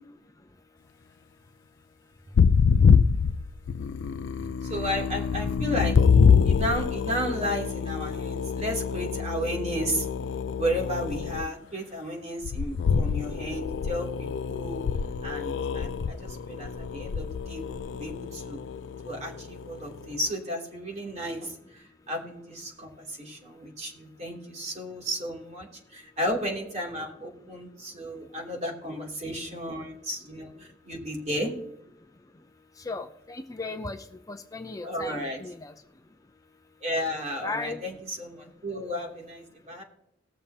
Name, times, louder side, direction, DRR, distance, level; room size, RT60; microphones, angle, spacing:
sound 1, 2.4-11.5 12.4-20.0, left 6 dB, 80° left, 0.4 m, -25 dB
voice 1, 4.6-6.0 6.4-10.1 10.6-14.8 15.2-18.6 19.0-31.5 34.8-35.4 36.8-39.8, equal, 40° right, -1 dB, 2.9 m, -33 dB
voice 2, 32.8-34.0 34.3-35.7 37.4-37.8, left 3 dB, 20° left, 7 dB, 0.5 m, -36 dB
19.5 x 7.0 x 2.8 m, 0.81 s
head